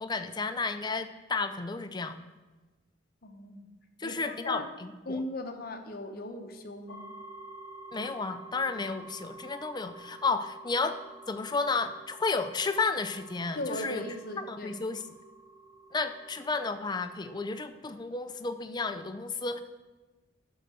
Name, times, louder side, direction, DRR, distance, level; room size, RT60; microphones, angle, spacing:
voice 1, 0.0-2.2 4.0-5.2 7.9-11.0 11.3-14.0 14.5-15.0 15.9-19.6, left 4 dB, 25° left, 9 dB, 0.5 m, -32 dB
voice 2, 3.2-3.7 4.0-4.7 5.1-7.0 13.6-14.8, left 1 dB, 50° left, 5 dB, 0.9 m, -38 dB
sound 1, 6.9-17.7, right 2 dB, 85° left, 1.0 m, -50 dB
11.0 x 3.9 x 6.3 m, 1.2 s
head